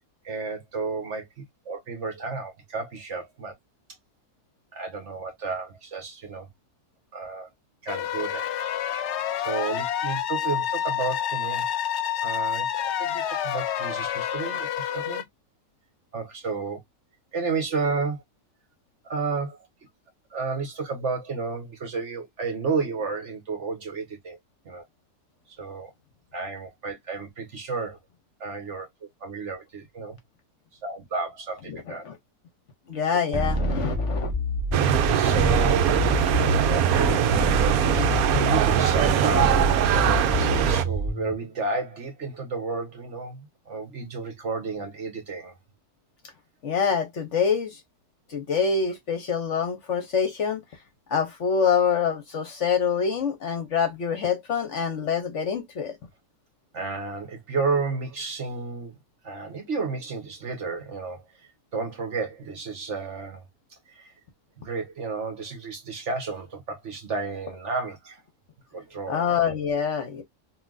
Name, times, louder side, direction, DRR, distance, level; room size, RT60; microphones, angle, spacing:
voice 1, 0.2-1.2 1.6-3.5 4.7-6.5 7.1-7.5 7.8-8.5 9.4-11.6 12.2-15.2 16.1-16.8 17.3-18.2 19.0-19.7 20.3-24.4 24.6-24.8 25.5-25.9 26.3-28.0 28.4-28.9 29.2-30.2 30.8-32.0 35.1-36.0 36.6-37.3 38.2-45.5 56.7-58.9 59.2-61.2 61.7-63.4 63.9-64.1 64.6-68.2 68.7-69.3, right 4 dB, 50° right, 1.2 m, -32 dB
sound 1, 7.9-15.2, left 9 dB, 70° left, 0.6 m, -28 dB
voice 2, 31.7-32.1 32.9-34.3 37.1-37.2 37.9-38.0 46.6-47.8 48.3-50.6 51.1-56.0 69.1-70.2, left 6 dB, 55° left, 0.9 m, -26 dB
sound 2, 33.3-41.3, right 1 dB, 5° right, 0.5 m, -27 dB
sound 3, 34.7-40.8, right 9 dB, 70° right, 1.0 m, -22 dB
5.3 x 2.6 x 2.4 m
omnidirectional pair, 1.7 m